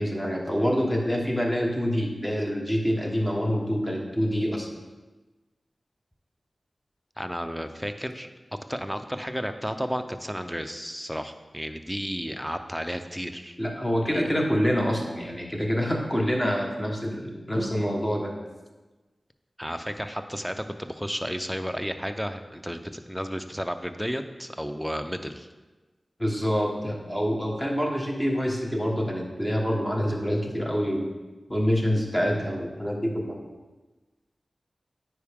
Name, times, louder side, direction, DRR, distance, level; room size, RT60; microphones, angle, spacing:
voice 1, 0.0-4.7 13.6-18.3 26.2-31.1 31.5-33.4, equal, 20° left, 0 dB, 1.4 m, -26 dB
voice 2, 7.2-8.3 8.7-13.6 14.1-14.2 19.6-25.5, equal, ahead, 8 dB, 0.5 m, -32 dB
9.3 x 4.7 x 3.6 m, 1.2 s
wide cardioid pair, 55°, 0 cm